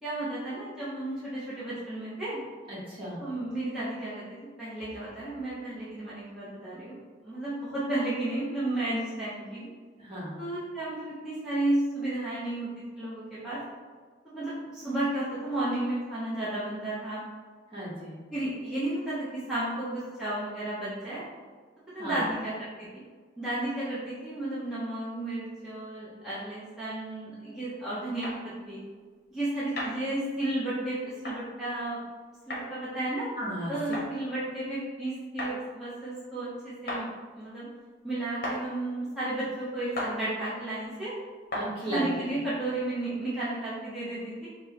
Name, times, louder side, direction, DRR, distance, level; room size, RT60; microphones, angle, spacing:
voice 1, 0.0-2.4 3.2-7.0 7.2-9.7 10.4-12.7 12.9-13.6 14.2-17.2 18.3-21.2 21.9-22.5 22.8-22.9 23.4-28.4 28.7-28.8 29.3-32.0 32.5-33.3 33.7-37.1 37.3-37.7 38.0-41.1 41.9-44.5, right 1 dB, ahead, -12 dB, 0.6 m, -33 dB
voice 2, 2.7-3.2 10.0-10.4 17.7-18.1 22.0-22.2 33.4-33.7 41.5-42.0, right 1 dB, 30° right, -7 dB, 1.0 m, -35 dB
sound 1, 28.2-28.4 29.8-29.9 31.2-31.4 32.5-32.6 33.9-34.1 35.4-35.6 36.9-37.0 38.4-38.6 39.9-40.1 41.5-41.7, left 1 dB, 50° left, 0.8 m, -33 dB
4.4 x 2.0 x 2.8 m, 1.5 s
head